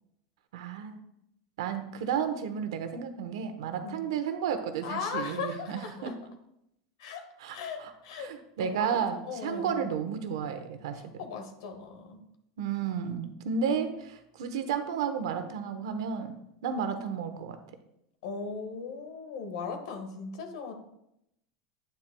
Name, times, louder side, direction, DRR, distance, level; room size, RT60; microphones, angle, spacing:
voice 1, 0.5-1.0 1.6-6.1 7.4-7.9 8.2-11.0 12.6-16.3 16.6-17.6, right 7 dB, 85° right, 8 dB, 1.0 m, -32 dB
voice 2, 4.8-6.1 7.0-8.3 8.6-9.0 9.3-9.9 11.0-12.2 18.2-20.7, left 5 dB, 80° left, 5 dB, 1.5 m, -38 dB
8.9 x 8.8 x 2.3 m, 0.80 s
supercardioid pair, 140°, 3 cm